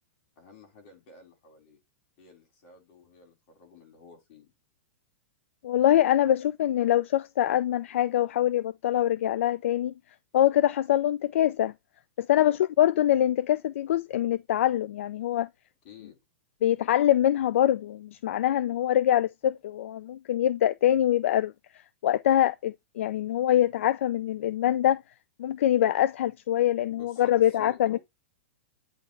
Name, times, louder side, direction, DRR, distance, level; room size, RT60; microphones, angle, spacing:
voice 1, 0.4-1.8 2.2-4.5 12.3-12.6 15.8-16.2 26.9-28.0, left 5 dB, 50° left, 4.5 m, -52 dB
voice 2, 5.6-9.9 10.3-11.7 12.2-15.5 16.6-21.5 22.0-25.0 25.4-28.0, left 12 dB, 75° left, 0.4 m, -24 dB
9.2 x 3.8 x 3.3 m
hypercardioid pair, 145°, 7 cm